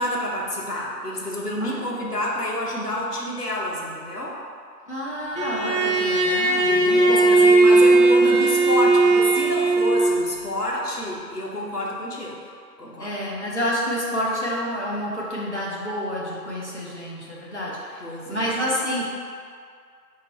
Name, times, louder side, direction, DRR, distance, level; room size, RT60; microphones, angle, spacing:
voice 1, 0.0-4.4 6.7-12.4 12.8-13.1 18.0-18.6, left 1 dB, 70° left, -3 dB, 1.0 m, -29 dB
voice 2, 4.9-7.2 13.0-19.0, equal, 45° left, -6 dB, 0.8 m, -29 dB
Bowed string instrument, 5.4-10.2, right 2 dB, 90° right, 1.1 m, -17 dB
3.7 x 2.7 x 4.4 m, 2.2 s
figure-of-eight pair, 175°, 49 cm